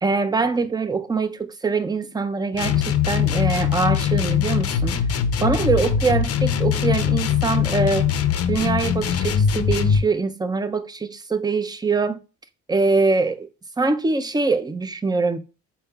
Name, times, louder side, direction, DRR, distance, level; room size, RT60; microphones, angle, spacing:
voice 1, 0.0-5.0 5.4-8.1 8.5-12.2 12.7-13.5 13.8-15.4, right 4 dB, 15° right, 0.4 m, -23 dB
sound 1, 2.5-10.1, left 8 dB, 50° left, 0.6 m, -21 dB
5.2 x 4.5 x 2.3 m
cardioid pair, 90°, 30 cm